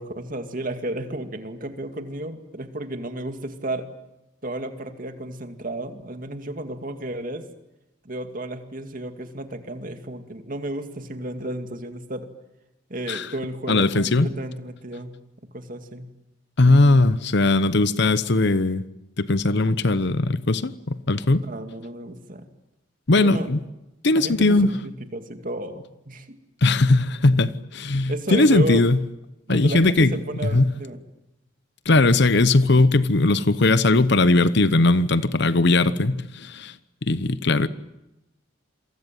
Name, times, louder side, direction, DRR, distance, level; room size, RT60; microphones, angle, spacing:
voice 1, 0.0-3.9 4.4-7.4 8.0-12.3 12.9-15.1 15.5-16.1 21.4-22.5 23.1-23.5 24.1-26.4 28.1-28.8 29.5-31.0, right 1 dB, 45° right, 2.4 m, -32 dB
voice 2, 13.7-14.3 16.6-18.8 19.2-21.4 23.1-23.6 24.0-24.7 26.6-29.0 29.5-30.1 30.4-30.7 31.9-36.7 37.1-37.7, left 2 dB, 55° left, 0.9 m, -19 dB
27.5 x 23.5 x 9.3 m
head